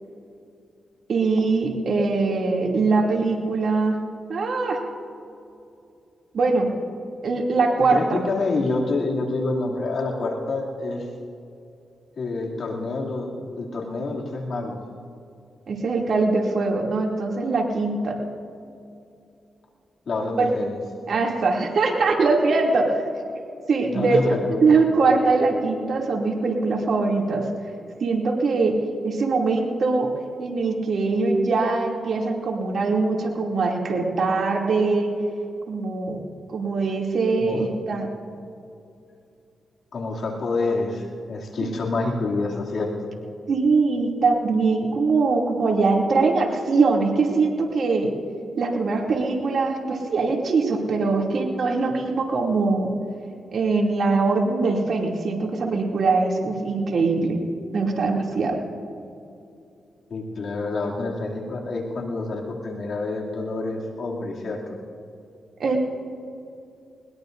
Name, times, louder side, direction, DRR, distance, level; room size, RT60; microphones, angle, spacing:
voice 1, 1.1-4.0 4.3-4.8 6.3-6.7 7.2-8.2 15.7-18.1 20.4-20.5 21.1-23.0 23.7-24.2 24.6-27.4 28.0-28.7 29.0-30.1 30.4-35.1 35.7-36.2 36.5-38.1 41.6-41.7 43.5-48.1 48.6-52.9 53.5-57.4 57.7-58.6 65.6-65.8, right 3 dB, 65° right, 0 dB, 2.7 m, -22 dB
voice 2, 7.9-11.1 12.2-14.8 20.1-20.8 23.9-24.8 37.4-37.7 39.9-43.1 60.1-64.8, left 3 dB, 65° left, -2 dB, 2.7 m, -27 dB
21.0 x 21.0 x 2.7 m, 2.6 s
cardioid pair, 65°, 0 cm